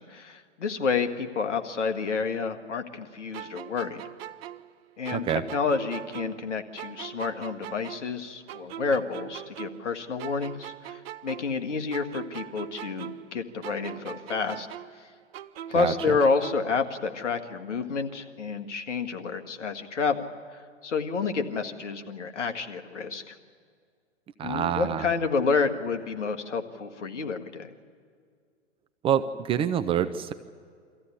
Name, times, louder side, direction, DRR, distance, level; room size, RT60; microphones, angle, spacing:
voice 1, 0.0-4.0 5.0-5.2 5.5-14.7 15.0-15.1 15.7-23.4 24.4-27.7, left 5 dB, 75° left, 7 dB, 1.8 m, -29 dB
sound 1, 3.3-6.5 6.8-9.9 10.2-13.4 13.6-16.8, right 11 dB, 55° right, 0.8 m, -41 dB
voice 2, 5.1-5.5 15.7-16.2 24.4-25.1 29.0-30.3, right 9 dB, 15° right, 10 dB, 0.5 m, -27 dB
24.0 x 14.5 x 9.9 m, 2.1 s
hypercardioid pair, 115°, 36 cm